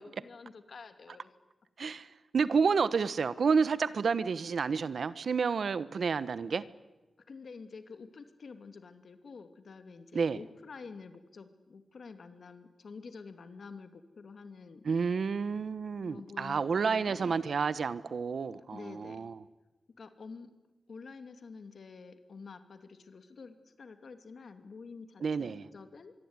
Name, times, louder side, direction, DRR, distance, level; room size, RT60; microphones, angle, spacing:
voice 1, 0.0-1.3 7.2-14.8 16.0-17.5 18.7-19.3 20.0-20.6 20.9-26.1, left 4 dB, 65° left, 9 dB, 2.6 m, -49 dB
voice 2, 1.8-2.1 2.3-6.6 10.1-10.4 14.8-19.4 25.2-25.7, right 5 dB, 70° right, 16 dB, 1.1 m, -30 dB
26.0 x 23.0 x 9.8 m, 1.1 s
wide cardioid pair, 110°, 0 cm